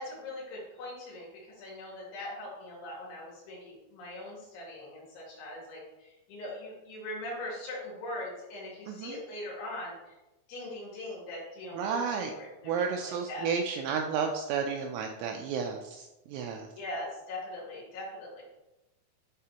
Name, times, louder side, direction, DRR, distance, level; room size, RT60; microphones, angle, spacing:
voice 1, 0.0-9.9 10.5-13.5 16.7-18.4, left 1 dB, 70° left, -6 dB, 4.4 m, -41 dB
voice 2, 11.7-12.3 12.6-16.7, right 6 dB, 85° right, 3 dB, 2.8 m, -32 dB
11.0 x 4.0 x 2.9 m, 0.98 s
omnidirectional pair, 5.9 m